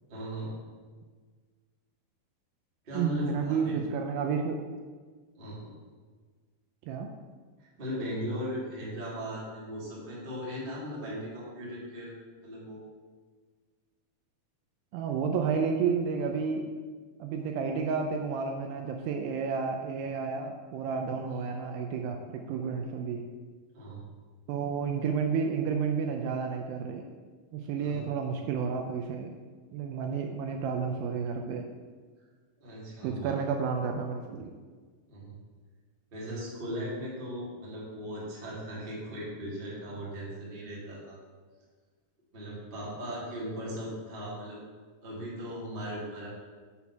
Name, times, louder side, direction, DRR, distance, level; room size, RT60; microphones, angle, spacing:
voice 1, 0.1-0.5 2.8-3.7 5.4-5.7 7.6-12.1 12.4-12.8 23.7-24.0 27.7-28.0 32.6-33.3 35.1-35.3 36.1-41.2 42.3-44.6 45.0-46.3, equal, 35° right, -6 dB, 0.8 m, -38 dB
voice 2, 2.9-4.6 6.9-7.1 14.9-16.7 17.2-23.2 24.5-27.1 27.5-29.3 29.7-31.7 33.0-34.5, right 6 dB, 80° right, 4 dB, 2.2 m, -31 dB
7.0 x 4.2 x 5.6 m, 1.5 s
omnidirectional pair, 4.4 m